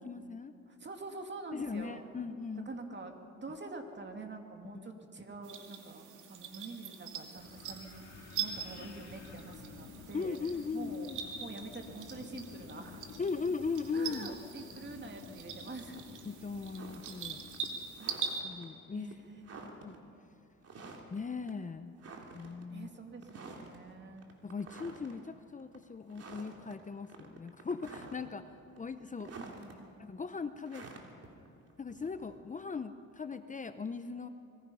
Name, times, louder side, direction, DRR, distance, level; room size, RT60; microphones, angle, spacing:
voice 1, 0.0-0.5 1.5-2.7 10.1-11.2 13.2-14.3 16.3-17.4 18.4-19.1 19.7-20.0 21.1-21.9 22.3-22.9 24.4-28.5 28.8-29.4 30.0-30.8 31.8-34.3, left 5 dB, 25° left, 10 dB, 0.8 m, -38 dB
voice 2, 0.7-2.1 2.7-8.1 8.4-10.4 10.7-11.1 11.4-13.2 13.9-16.0 18.0-18.6 18.9-19.4 22.7-24.3 29.4-30.0, right 3 dB, 35° right, 4 dB, 2.6 m, -46 dB
sound 1, 5.4-18.4, right 7 dB, 80° right, 2.4 m, -43 dB
Wind, 7.4-17.6, left 5 dB, 60° left, 2.4 m, -51 dB
sound 2, 16.8-17.2 17.5-18.7 19.1-19.2 19.4-20.0 20.6-21.2 21.5-21.6 22.0-22.6 23.2-23.8 24.2-25.2 25.6-25.8 26.1-26.7 27.0-28.4 28.7-29.7 30.7-32.4, right 4 dB, 55° right, 3.2 m, -49 dB
25.5 x 21.0 x 5.6 m, 2.7 s
cardioid pair, 90°, 30 cm